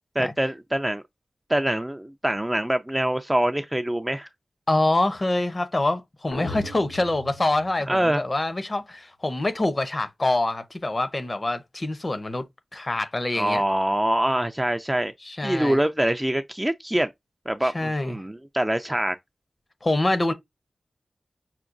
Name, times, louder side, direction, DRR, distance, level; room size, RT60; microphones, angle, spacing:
voice 1, 0.2-1.0 1.5-4.3 7.9-8.2 13.3-15.1 15.4-17.1 17.5-19.2, right 1 dB, 10° right, 0.3 m, -24 dB
voice 2, 4.7-12.5 12.7-13.6 15.2-15.8 17.7-18.2 19.8-20.3, left 2 dB, 35° left, 0.7 m, -25 dB
sound 1, 6.3-8.4, left 2 dB, 85° left, 1.0 m, -38 dB
5.7 x 2.2 x 2.5 m
wide cardioid pair, 110°, 0 cm